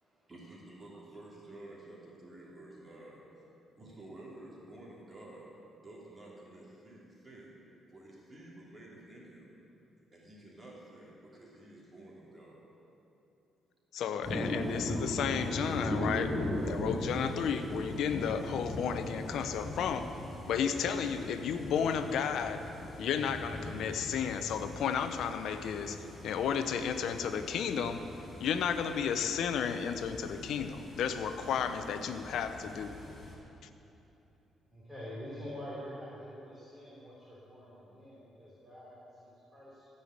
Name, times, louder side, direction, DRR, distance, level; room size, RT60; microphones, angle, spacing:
voice 1, 0.3-3.2 3.8-5.5 5.8-7.6 7.9-9.5 10.1-12.7, right 1 dB, 30° right, -5 dB, 3.0 m, -51 dB
voice 2, 13.9-16.3 16.6-20.1 20.5-22.6 23.0-28.0 28.4-33.0, left 7 dB, 75° left, 9 dB, 0.7 m, -33 dB
sound 1, 14.2-33.4, left 1 dB, 40° left, 3.4 m, -40 dB
voice 3, 34.7-39.9, equal, 10° right, -9 dB, 3.4 m, -46 dB
15.0 x 5.7 x 8.0 m, 2.9 s
cardioid pair, 90°, 0 cm